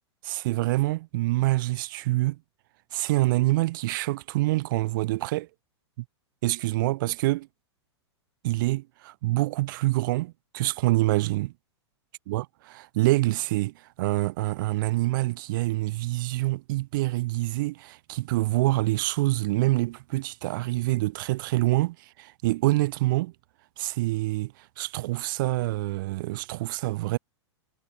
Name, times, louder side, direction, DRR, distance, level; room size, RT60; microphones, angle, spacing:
voice 1, 0.2-2.4 2.9-5.5 6.4-7.5 8.4-11.5 12.3-23.3 23.8-27.2, right 19 dB, 45° right, 2.0 m, -26 dB
figure-of-eight pair, 100°, 15 cm